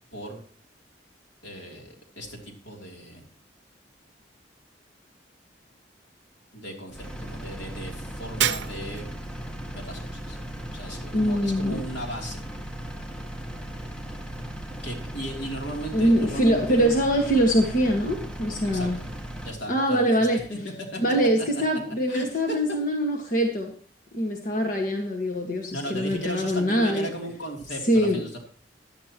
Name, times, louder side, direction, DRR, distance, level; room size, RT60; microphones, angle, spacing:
voice 1, 1.4-3.2 6.5-9.1 9.6-10.4 10.7-12.4 14.8-16.9 18.6-19.1 19.4-21.0 22.1-22.6 25.7-28.4, right 1 dB, 80° left, 1 dB, 3.1 m, -36 dB
Engine, 6.9-19.6, right 1 dB, 5° left, 1.1 m, -37 dB
Shatter, 8.4-9.2, right 10 dB, 80° right, 0.6 m, -27 dB
voice 2, 11.1-11.8 15.9-19.0 19.7-20.4 21.0-23.7 24.1-27.1 27.9-28.2, equal, 50° left, 2 dB, 1.6 m, -23 dB
16.0 x 10.5 x 3.0 m, 0.43 s
head